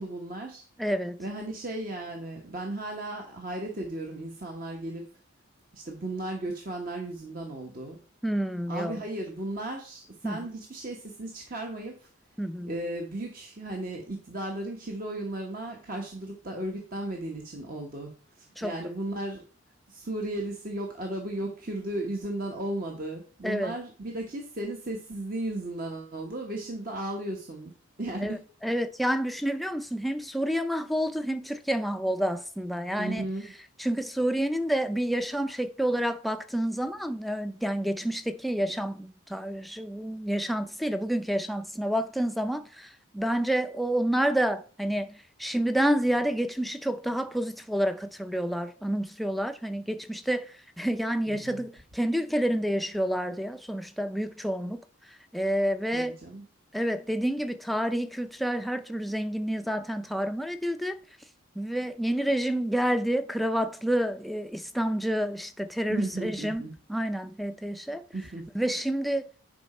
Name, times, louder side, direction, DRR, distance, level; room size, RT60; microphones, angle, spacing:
voice 1, 0.0-0.7 1.2-5.1 5.7-8.0 8.7-12.1 12.6-19.4 19.9-27.7 28.0-28.4 32.9-33.4 51.3-51.7 55.9-56.4 65.9-66.7 68.1-68.5, right 1 dB, 40° right, 1.2 m, -35 dB
voice 2, 0.8-1.2 8.2-9.0 10.2-10.4 12.4-12.7 18.6-18.7 23.4-23.7 28.2-33.2 33.8-45.1 45.4-54.8 55.3-56.2 56.7-61.0 61.6-66.6 66.9-68.0 68.5-69.3, equal, ahead, 0.5 m, -29 dB
10.5 x 5.0 x 4.3 m
head